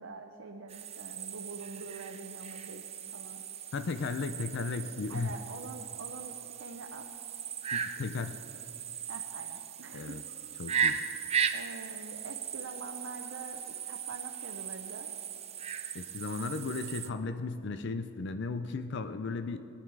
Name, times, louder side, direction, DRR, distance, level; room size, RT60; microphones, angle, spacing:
voice 1, 0.0-3.4 5.1-7.1 9.1-10.2 11.5-13.6 13.9-15.1, right 3 dB, 75° right, 2 dB, 0.8 m, -45 dB
sound 1, 0.7-17.1, right 7 dB, 30° right, 0.5 m, -37 dB
voice 2, 3.7-5.3 7.7-8.4 9.9-10.2 10.6-11.0 15.9-19.6, left 4 dB, 60° left, 10 dB, 0.5 m, -35 dB
18.0 x 11.0 x 4.7 m, 2.9 s
head